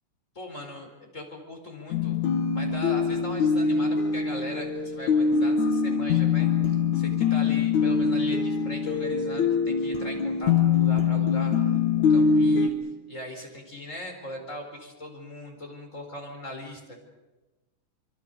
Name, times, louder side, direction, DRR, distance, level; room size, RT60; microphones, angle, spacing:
voice 1, 0.3-2.2 2.5-11.6 11.9-12.7 13.1-17.0, left 1 dB, 25° left, 2 dB, 4.8 m, -40 dB
sound 1, 1.9-12.7, left 5 dB, 75° left, 3.2 m, -23 dB
26.0 x 24.5 x 6.7 m, 1.2 s
omnidirectional pair, 3.4 m